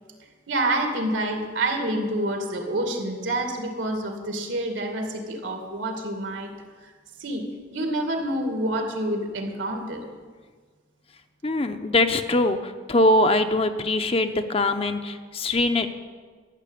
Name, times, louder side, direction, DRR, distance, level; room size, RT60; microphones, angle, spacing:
voice 1, 0.5-6.5 6.8-6.9 7.2-7.4 7.7-10.1, right 1 dB, 80° right, 3 dB, 2.4 m, -27 dB
voice 2, 11.4-15.9, left 2 dB, 30° left, 8 dB, 0.7 m, -22 dB
13.5 x 7.3 x 9.9 m, 1.5 s
head